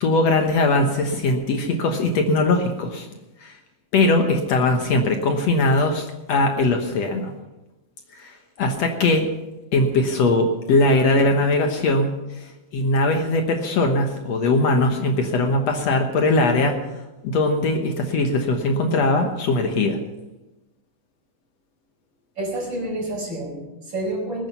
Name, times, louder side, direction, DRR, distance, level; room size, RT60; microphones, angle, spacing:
voice 1, 0.0-3.1 3.4-3.5 3.9-7.3 8.1-9.3 9.7-16.8 17.2-20.0, left 2 dB, 65° left, 4 dB, 2.2 m, -20 dB
voice 2, 22.4-24.5, right 1 dB, 35° right, -2 dB, 5.8 m, -29 dB
20.5 x 9.2 x 5.6 m, 1.0 s
omnidirectional pair, 3.4 m